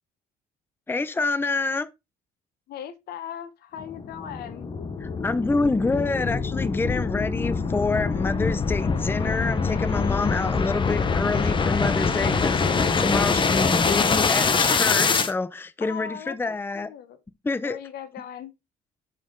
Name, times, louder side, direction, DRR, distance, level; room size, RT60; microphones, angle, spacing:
voice 1, 0.9-1.9 5.0-16.9 17.4-17.8, left 3 dB, 15° left, 0.7 m, -27 dB
voice 2, 2.7-4.7 15.8-17.2 17.6-18.5, left 9 dB, 70° left, 1.1 m, -39 dB
sound 1, 3.8-15.3, left 5 dB, 30° left, 1.0 m, -24 dB
8.3 x 4.4 x 3.8 m
cardioid pair, 110°, 17 cm